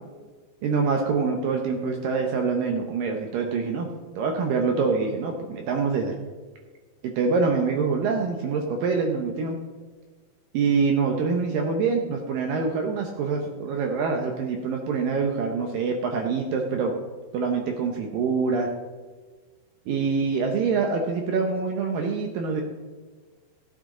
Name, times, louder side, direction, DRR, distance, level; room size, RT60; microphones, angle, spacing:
voice 1, 0.6-3.9 4.2-6.1 7.0-9.6 10.5-16.9 17.3-18.7 19.9-22.6, right 5 dB, 70° right, 2 dB, 2.2 m, -25 dB
15.5 x 8.4 x 3.7 m, 1.4 s
omnidirectional pair, 4.7 m